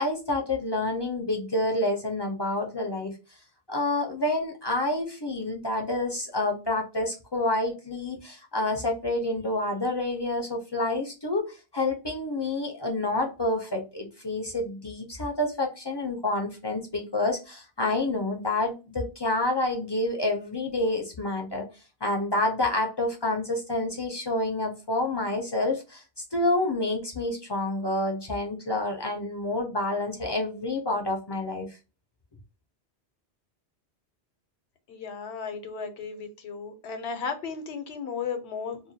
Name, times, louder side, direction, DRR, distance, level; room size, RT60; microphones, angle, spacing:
voice 1, 0.0-3.2 3.7-21.7 22.0-31.8, left 2 dB, 35° left, 1 dB, 0.4 m, -28 dB
voice 2, 34.9-38.8, left 5 dB, 80° left, 7 dB, 1.0 m, -35 dB
2.3 x 2.2 x 2.7 m, 0.30 s
omnidirectional pair, 1.1 m